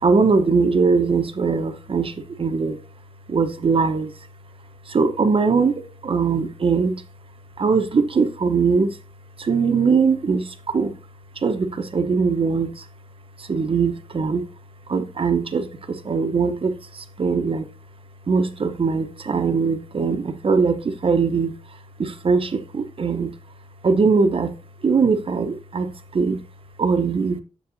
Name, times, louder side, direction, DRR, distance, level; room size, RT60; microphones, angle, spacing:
voice 1, 0.0-2.8 3.3-4.1 4.9-7.0 7.6-9.0 9.4-10.9 11.4-12.8 13.4-14.5 14.9-17.7 18.3-21.6 22.0-23.3 23.8-24.5 24.8-26.4 26.8-27.4, right 5 dB, 50° right, 0.8 m, -21 dB
7.2 x 7.1 x 2.6 m
wide cardioid pair, 115°, 12 cm